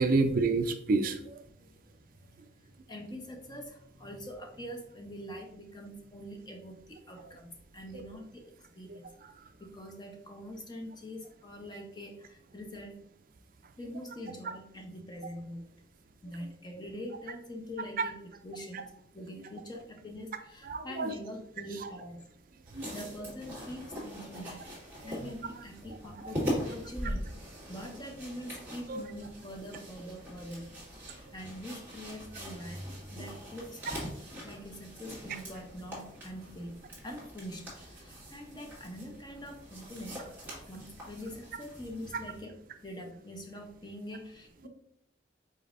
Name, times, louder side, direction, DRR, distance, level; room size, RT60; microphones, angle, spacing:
voice 1, 0.0-1.4 8.9-9.0 20.6-21.1 21.8-21.9 22.7-22.8 28.9-29.0, right 3 dB, 45° right, 7 dB, 0.3 m, -28 dB
voice 2, 1.5-9.1 9.6-13.0 13.8-15.7 16.2-22.3 22.9-27.2 27.7-31.0 31.3-34.1 34.4-40.3 40.6-42.6 42.8-44.7, equal, 20° left, 2 dB, 0.6 m, -44 dB
sound 1, 22.7-42.4, equal, 10° right, 1.7 m, -42 dB
5.2 x 4.0 x 2.5 m, 0.72 s
head